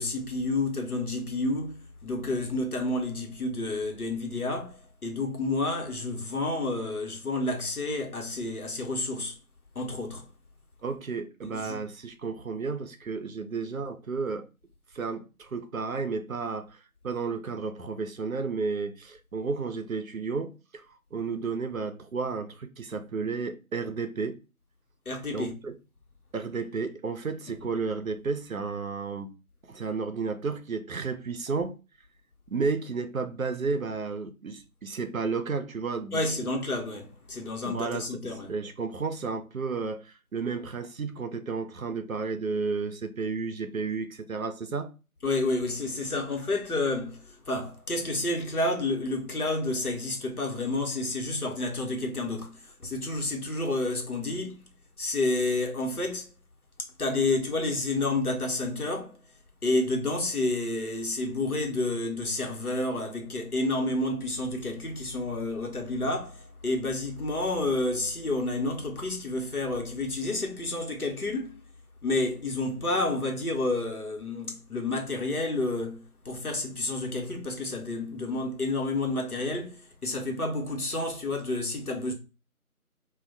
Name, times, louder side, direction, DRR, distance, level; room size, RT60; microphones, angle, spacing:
voice 1, 0.0-9.4 9.7-10.3 11.4-11.8 25.1-25.6 27.5-27.8 36.1-38.5 45.2-56.3 56.8-59.2 59.6-71.6 72.0-82.1, left 2 dB, 80° left, 1.0 m, -30 dB
voice 2, 10.8-14.5 14.9-24.4 25.3-25.7 26.3-29.3 29.7-31.8 32.5-36.5 37.7-38.2 38.5-44.9, right 4 dB, 70° right, 0.5 m, -32 dB
2.2 x 2.1 x 3.8 m
figure-of-eight pair, 180°, 44 cm